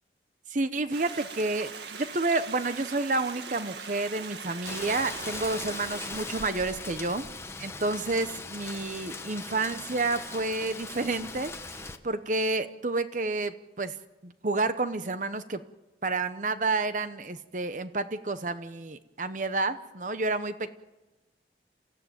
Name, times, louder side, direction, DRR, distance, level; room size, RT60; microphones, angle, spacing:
voice 1, 0.5-7.3 7.6-14.0 14.2-15.6 16.0-20.7, right 3 dB, 45° right, 11 dB, 0.8 m, -30 dB
Stream, 0.9-7.0, right 5 dB, 75° right, 1.8 m, -42 dB
Rain, 4.6-12.0, left 3 dB, 15° left, 1.2 m, -39 dB
28.5 x 15.5 x 9.2 m, 1.1 s
head